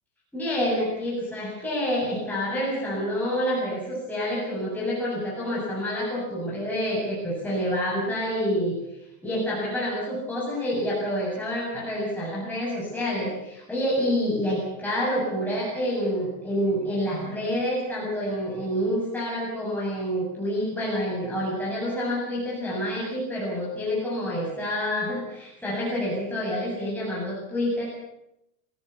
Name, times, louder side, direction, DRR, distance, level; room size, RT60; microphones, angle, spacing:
voice 1, 0.3-8.8 9.2-27.9, equal, 5° left, -6 dB, 7.8 m, -28 dB
26.5 x 15.0 x 8.5 m, 0.84 s
supercardioid pair, 155°, 46 cm